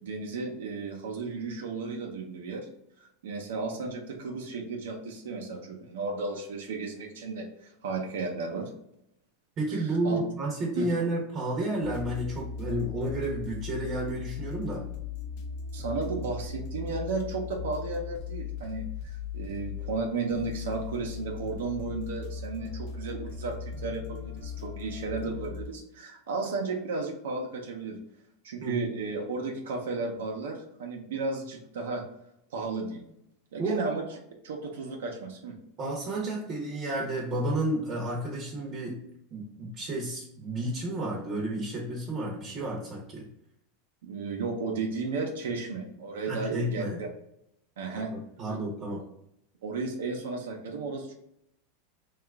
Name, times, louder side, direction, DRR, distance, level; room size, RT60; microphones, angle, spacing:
voice 1, 0.0-2.7 3.2-8.7 9.7-10.2 10.8-10.9 15.7-18.8 19.3-28.0 28.4-32.0 32.5-33.0 33.5-34.2 34.4-35.6 44.0-47.1 47.8-48.1 49.6-51.1, right 4 dB, 90° right, 1 dB, 0.6 m, -34 dB
voice 2, 9.6-14.9 28.6-28.8 33.6-33.9 35.8-39.0 39.3-43.2 46.3-47.0 48.1-49.0, right 1 dB, 35° right, -2 dB, 0.8 m, -31 dB
sound 1, 11.8-25.7, left 7 dB, 55° left, 0.5 m, -38 dB
2.8 x 2.3 x 3.4 m, 0.77 s
supercardioid pair, 135°, 0 cm